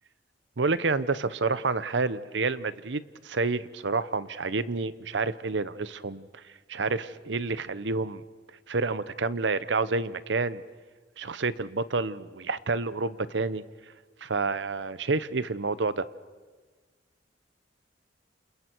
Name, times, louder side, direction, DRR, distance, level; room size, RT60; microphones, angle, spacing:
voice 1, 0.6-6.3 6.7-8.2 8.7-10.6 11.2-13.6 14.2-16.1, right 3 dB, 80° right, 15 dB, 0.8 m, -29 dB
29.0 x 28.5 x 4.6 m, 1.4 s
head